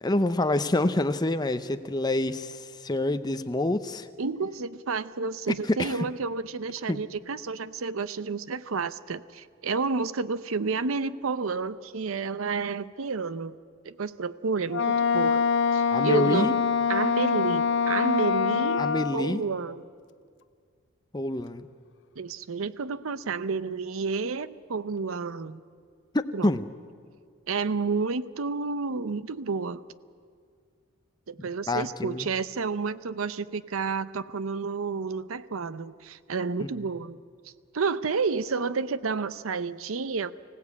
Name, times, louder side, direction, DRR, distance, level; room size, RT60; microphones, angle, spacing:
voice 1, 0.0-4.1 5.7-6.0 6.9-7.0 15.9-16.5 18.8-19.4 21.1-21.7 26.1-26.7 31.7-32.3 36.6-36.8, left 2 dB, 20° left, 10 dB, 0.7 m, -27 dB
voice 2, 4.2-13.6 13.8-15.5 15.7-16.6 16.9-18.9 19.1-19.8 22.2-25.6 26.3-26.5 27.5-29.8 31.3-37.2 37.7-40.3, right 4 dB, 80° right, 15 dB, 0.6 m, -30 dB
Wind instrument woodwind instrument, 14.7-19.2, left 6 dB, 60° left, 0.6 m, -24 dB
25.0 x 16.5 x 8.4 m, 2.1 s
head